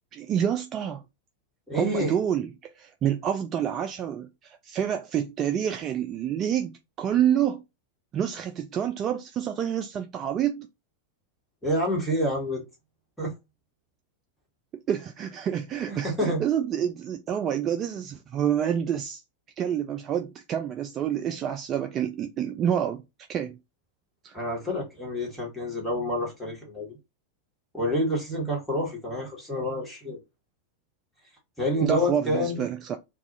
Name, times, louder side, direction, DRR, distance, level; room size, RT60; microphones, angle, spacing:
voice 1, 0.1-1.0 1.7-6.7 7.0-7.6 8.1-10.7 14.9-19.2 19.6-23.0 23.3-23.6 24.2-24.4 31.8-33.0, right 9 dB, 30° right, 0.3 m, -28 dB
voice 2, 1.7-2.2 11.6-12.6 13.2-13.3 15.9-16.4 24.3-27.0 27.7-30.2 31.6-32.6, equal, ahead, 1.4 m, -28 dB
2.4 x 2.4 x 3.9 m
figure-of-eight pair, 90°, 0 cm